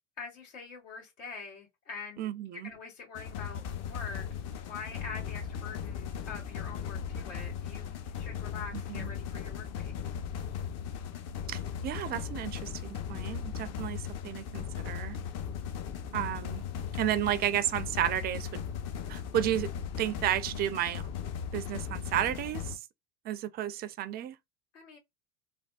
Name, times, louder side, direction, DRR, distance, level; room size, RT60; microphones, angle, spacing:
voice 1, 0.2-2.3 2.6-4.2 4.6-9.9 24.7-25.0, left 5 dB, 75° left, 2.1 m, -44 dB
voice 2, 2.2-2.7 8.7-9.1 11.5-15.2 16.1-16.6 17.0-18.6 19.1-19.7 20.0-21.1 21.5-22.8 23.2-24.4, right 12 dB, 25° right, 0.4 m, -32 dB
sound 1, 3.1-22.8, left 7 dB, 40° left, 0.7 m, -37 dB
3.4 x 2.2 x 2.3 m
hypercardioid pair, 80°, 38 cm